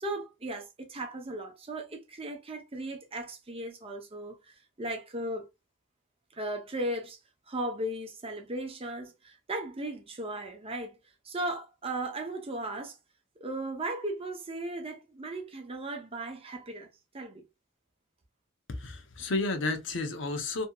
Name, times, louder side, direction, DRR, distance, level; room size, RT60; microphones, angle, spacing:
voice 1, 0.0-5.5 6.3-7.2 7.5-10.9 11.2-13.0 13.4-16.9 17.1-17.5, right 1 dB, 30° right, 0.7 m, -36 dB
voice 2, 18.7-20.7, left 2 dB, 65° left, 0.7 m, -32 dB
2.7 x 2.7 x 2.3 m
head